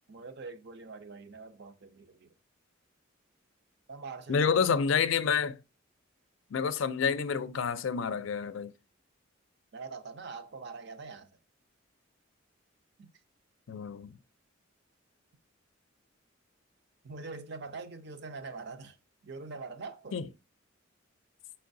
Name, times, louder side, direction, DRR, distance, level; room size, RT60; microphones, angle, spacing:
voice 1, 0.1-2.3 3.9-4.9 9.7-11.3 13.0-13.1 17.0-19.0 19.2-20.2, right 4 dB, 60° right, 0.5 m, -44 dB
voice 2, 4.3-5.6 6.5-8.7 13.7-14.2 20.1-20.3, left 6 dB, 80° left, 0.4 m, -28 dB
4.5 x 4.3 x 2.6 m
head